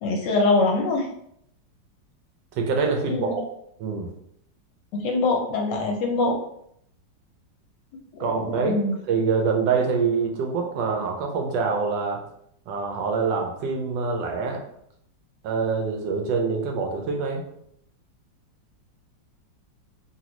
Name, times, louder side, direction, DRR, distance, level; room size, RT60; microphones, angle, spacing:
voice 1, 0.0-1.1 3.1-3.3 4.9-6.4 8.1-9.0, left 3 dB, 75° left, 1 dB, 1.1 m, -23 dB
voice 2, 2.5-3.4 3.8-4.1 8.2-8.8 9.1-12.2 12.7-14.6 15.4-17.4, right 5 dB, 75° right, 2 dB, 1.2 m, -25 dB
3.0 x 2.6 x 2.9 m, 0.71 s
omnidirectional pair, 2.1 m